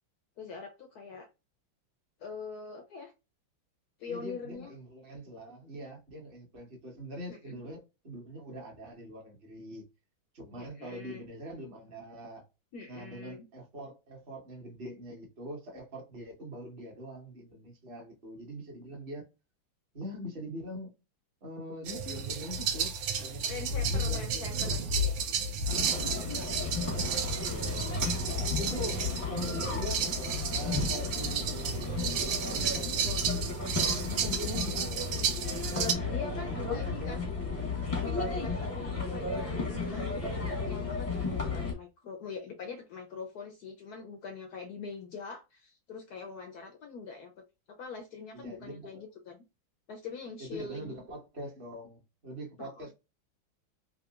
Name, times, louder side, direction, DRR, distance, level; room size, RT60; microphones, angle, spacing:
voice 1, 0.4-1.3 2.2-3.1 4.0-4.7 7.3-7.6 10.6-11.3 12.7-13.5 23.5-25.1 26.3-26.5 28.2-28.3 35.7-37.3 38.0-39.6 39.9-47.3 47.8-49.4 49.9-50.9 52.6-52.8, left 4 dB, 70° left, 0.9 m, -43 dB
voice 2, 4.1-9.8 10.3-12.4 12.9-19.3 19.9-20.9 21.4-25.1 25.8-27.9 28.6-29.0 29.3-30.0 30.5-33.2 33.8-35.1 36.0-37.6 48.3-49.0 50.4-52.9, equal, 35° right, 1.2 m, -43 dB
sound 1, 21.9-35.9, right 4 dB, 80° right, 1.3 m, -32 dB
sound 2, 25.7-41.7, left 4 dB, 25° left, 0.7 m, -34 dB
3.8 x 2.8 x 2.4 m
omnidirectional pair, 2.2 m